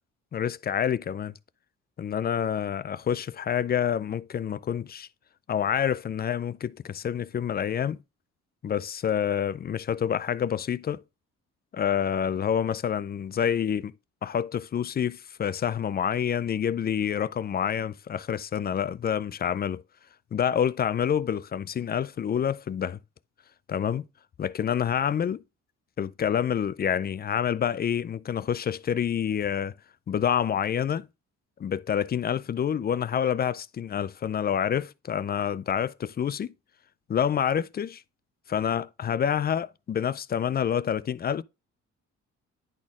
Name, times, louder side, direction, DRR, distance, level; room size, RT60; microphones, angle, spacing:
voice 1, 0.3-1.4 2.0-5.1 5.5-8.0 8.6-11.0 11.7-13.9 14.2-19.8 20.3-23.0 23.7-24.0 24.4-25.4 26.0-29.7 30.1-31.1 31.6-36.5 37.1-38.0 38.5-41.4, left 8 dB, 35° left, 0.4 m, -27 dB
10.5 x 4.2 x 3.6 m
cardioid pair, 90°, 30 cm